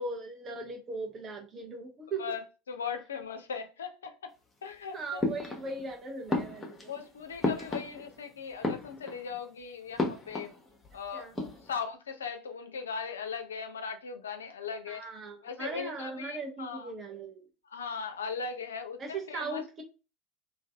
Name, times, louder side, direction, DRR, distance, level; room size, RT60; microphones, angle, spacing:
voice 1, 0.0-2.2 4.9-6.9 11.1-11.3 14.9-17.5 19.0-19.8, right 3 dB, 35° right, 0.7 m, -39 dB
voice 2, 2.2-4.3 4.6-5.2 6.9-10.5 10.9-15.1 15.4-16.9 17.6-19.8, left 6 dB, 80° left, 0.4 m, -39 dB
sound 1, 5.2-5.9 6.3-8.3 8.5-9.4 10.0-11.0 11.2-11.8, left 2 dB, 20° left, 0.7 m, -34 dB
2.5 x 2.2 x 2.2 m
figure-of-eight pair, 75°, 0 cm